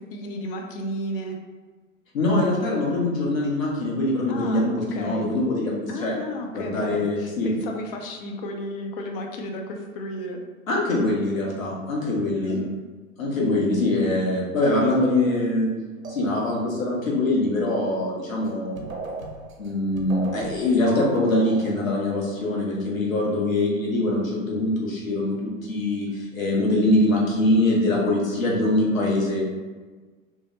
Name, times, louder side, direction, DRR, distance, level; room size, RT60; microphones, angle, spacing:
voice 1, 0.1-1.4 4.3-5.4 5.9-10.4 12.4-12.8, left 1 dB, 45° left, 2 dB, 0.5 m, -33 dB
voice 2, 2.1-6.1 6.5-7.5 10.7-12.5 13.2-15.7 16.1-18.9 19.6-29.4, left 1 dB, 80° left, -3 dB, 0.9 m, -23 dB
sound 1, 16.0-16.9 18.4-18.5 18.8-21.8, right 3 dB, 90° right, 0.5 m, -37 dB
2.2 x 2.0 x 2.8 m, 1.3 s
figure-of-eight pair, 95°, 40 cm